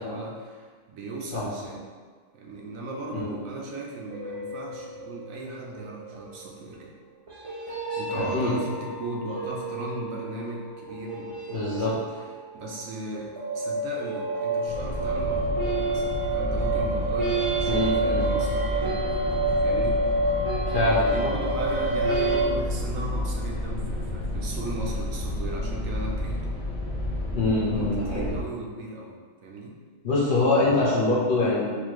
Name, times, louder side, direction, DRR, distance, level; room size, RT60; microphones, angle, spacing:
voice 1, 0.0-1.8 2.3-6.9 7.9-20.0 21.0-26.6 27.6-29.1 29.4-29.8, right 2 dB, 80° right, -2 dB, 1.0 m, -36 dB
sound 1, 4.1-6.7 7.3-12.8 13.1-22.4, right 2 dB, 35° right, 0.5 m, -29 dB
voice 2, 8.1-8.5 11.5-11.9 17.6-18.3 20.7-21.3 27.3-28.3 30.0-31.8, left 2 dB, 45° left, -7 dB, 0.8 m, -24 dB
sound 2, 14.7-28.4, left 1 dB, 65° left, 0.3 m, -31 dB
4.3 x 2.4 x 3.0 m, 1.5 s
omnidirectional pair, 1.4 m